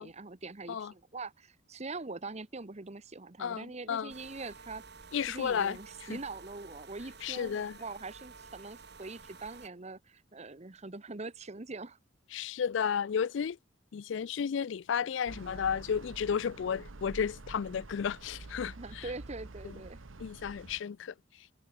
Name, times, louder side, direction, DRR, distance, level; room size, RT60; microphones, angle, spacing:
voice 1, 0.0-4.8 5.3-12.0 18.7-20.0, right 3 dB, 35° right, 1.0 m, -43 dB
voice 2, 3.4-4.1 5.1-5.8 7.2-7.7 12.3-13.6 13.9-19.0 20.2-21.1, left 7 dB, 65° left, 0.4 m, -33 dB
sound 1, 4.1-9.7, right 4 dB, 55° right, 6.8 m, -52 dB
sound 2, 15.3-20.8, right 2 dB, 90° right, 1.1 m, -48 dB
head